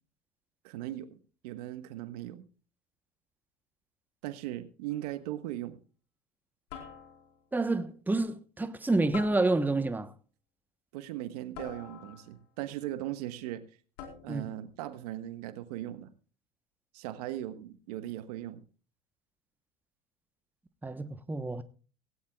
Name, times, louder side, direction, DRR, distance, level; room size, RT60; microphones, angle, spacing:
voice 1, 0.6-1.2 1.4-2.4 4.2-5.8 10.9-13.6 14.2-16.1 16.9-18.6, right 13 dB, 70° right, 1.4 m, -38 dB
sound 1, 4.9-5.2 6.7-7.5 9.1-10.0 11.5-12.5 14.0-14.6, left 7 dB, 65° left, 4.6 m, -47 dB
voice 2, 7.5-10.1 14.3-14.5 20.8-21.6, right 2 dB, 10° right, 1.1 m, -29 dB
17.5 x 17.5 x 2.4 m
hypercardioid pair, 75°, 20 cm